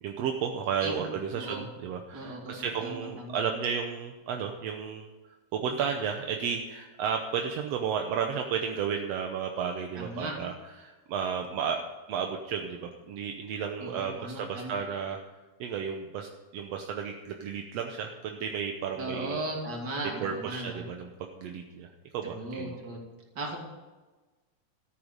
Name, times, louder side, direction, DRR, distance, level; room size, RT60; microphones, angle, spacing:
voice 1, 0.0-11.8 12.1-15.2 15.6-19.5 20.2-21.9 22.1-22.8, right 7 dB, 70° right, 3 dB, 1.6 m, -33 dB
voice 2, 1.3-1.6 2.1-3.4 10.0-10.3 13.8-14.7 19.0-20.8 22.3-23.0 23.3-23.6, right 2 dB, 30° right, -1 dB, 3.1 m, -37 dB
13.5 x 10.0 x 5.2 m, 1.2 s
omnidirectional pair, 3.8 m